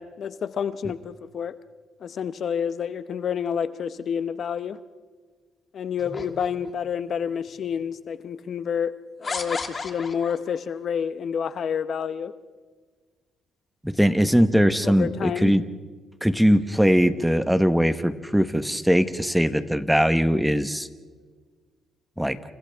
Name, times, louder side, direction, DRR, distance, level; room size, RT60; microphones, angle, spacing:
voice 1, 0.0-1.6 2.0-4.8 5.7-8.9 9.2-12.3 14.8-15.5, left 7 dB, 60° left, 13 dB, 0.8 m, -29 dB
sound 1, 6.0-6.9 7.7-7.8 9.2-10.5, left 4 dB, 35° left, 1.9 m, -34 dB
voice 2, 13.8-15.6 16.2-20.9 22.2-22.4, equal, 5° right, 11 dB, 1.2 m, -20 dB
29.5 x 29.0 x 3.5 m, 1.5 s
cardioid pair, 90°, 0 cm